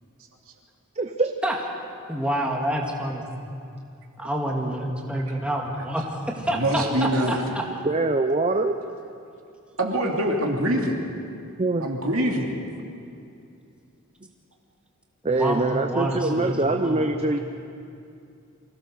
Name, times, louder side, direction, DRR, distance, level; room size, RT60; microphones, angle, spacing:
voice 1, 1.0-1.3 7.8-8.7 11.6-11.9 15.2-17.4, right 2 dB, 30° right, 5 dB, 0.7 m, -23 dB
voice 2, 2.1-3.3 4.2-6.0 6.4-7.7 15.2-17.1, right 1 dB, 5° right, -1 dB, 2.0 m, -27 dB
voice 3, 6.4-7.4 9.8-11.0 11.8-12.6, right 1 dB, 65° right, 0 dB, 2.9 m, -24 dB
25.0 x 16.5 x 6.7 m, 2.5 s
head